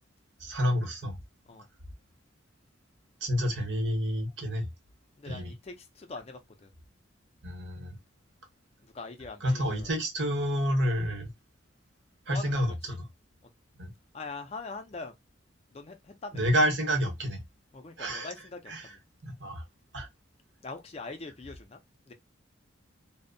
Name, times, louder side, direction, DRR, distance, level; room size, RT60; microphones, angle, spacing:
voice 1, 0.4-1.2 3.2-4.7 5.3-5.5 7.4-7.9 9.4-11.3 12.3-13.1 13.8-13.9 16.3-17.4 18.0-18.3 18.7-18.8 19.2-19.6 19.9-20.1, equal, 65° right, 0.9 m, -29 dB
voice 2, 5.2-6.7 8.8-9.9 12.3-13.0 14.1-15.1 15.7-16.4 17.7-19.0 20.6-21.8 22.1-22.2, left 3 dB, 30° left, 0.4 m, -43 dB
2.6 x 2.0 x 2.5 m
head